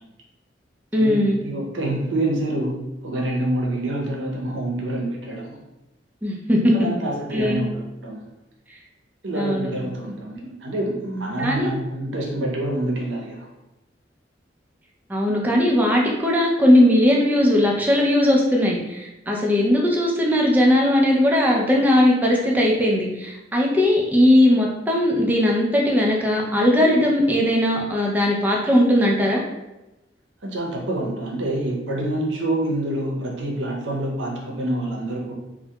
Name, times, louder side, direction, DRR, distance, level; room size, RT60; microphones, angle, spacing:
voice 1, 0.9-1.4 6.2-6.7 7.3-7.7 9.3-9.7 11.4-11.7 15.1-29.4, left 1 dB, 10° right, -2 dB, 0.4 m, -19 dB
voice 2, 1.4-5.6 6.7-8.2 9.2-13.5 30.4-35.3, right 1 dB, 85° right, -1 dB, 0.6 m, -27 dB
2.2 x 2.1 x 2.7 m, 0.98 s
head